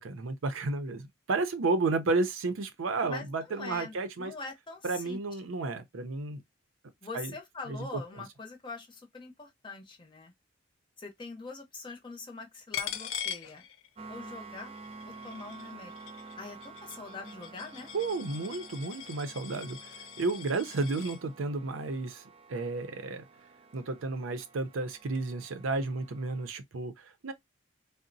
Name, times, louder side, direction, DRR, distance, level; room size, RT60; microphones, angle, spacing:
voice 1, 0.0-4.3 4.8-6.4 7.1-7.3 7.7-8.0 17.9-22.2 22.5-23.2 23.7-27.3, right 3 dB, 85° right, 0.5 m, -32 dB
voice 2, 3.1-5.2 7.0-10.3 11.0-13.7 14.1-14.7 15.1-15.9 16.4-17.9, left 3 dB, 25° left, 0.6 m, -43 dB
Coin (dropping), 12.7-14.2 14.6-21.2, left 9 dB, 80° left, 0.4 m, -42 dB
sound 1, 14.0-26.5, right 4 dB, 30° right, 0.3 m, -50 dB
3.8 x 2.0 x 2.5 m
head